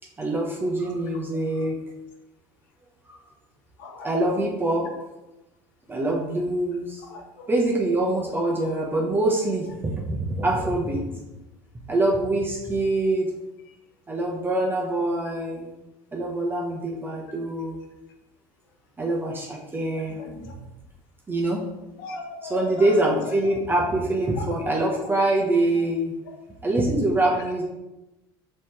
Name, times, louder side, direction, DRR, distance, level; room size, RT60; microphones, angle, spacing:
voice 1, 0.2-1.8 3.1-3.2 4.0-4.9 5.9-7.0 7.5-11.0 11.9-13.3 14.1-15.7 16.1-17.8 19.0-20.2 20.4-20.6 21.3-21.6 22.5-26.1 26.6-27.6, right 2 dB, 20° right, -2 dB, 0.8 m, -24 dB
voice 2, 3.8-4.4 7.0-7.5 20.2-20.5 22.0-22.9 24.4-24.5 24.8-25.1 26.3-26.4 27.2-27.4, left 3 dB, 85° left, 3 dB, 0.8 m, -38 dB
4.0 x 3.1 x 3.3 m, 0.99 s
supercardioid pair, 90°, 11 cm